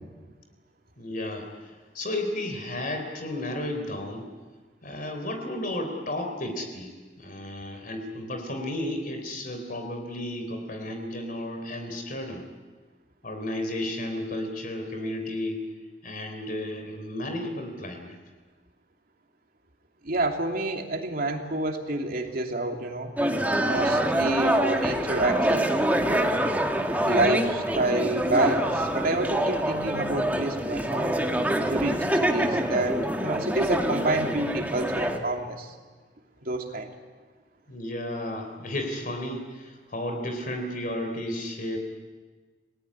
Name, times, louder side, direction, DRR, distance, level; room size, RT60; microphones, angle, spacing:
voice 1, 1.0-4.3 4.8-6.9 7.2-12.4 13.2-15.7 16.0-18.2 37.7-41.8, left 1 dB, 50° left, 4 dB, 3.7 m, -33 dB
voice 2, 20.0-23.1 23.6-26.4 27.0-31.1 31.6-35.7 36.4-36.9, right 2 dB, 55° right, 3 dB, 2.9 m, -28 dB
sound 1, 23.2-35.2, right 1 dB, 10° right, 1.9 m, -25 dB
29.5 x 18.5 x 9.8 m, 1.4 s
head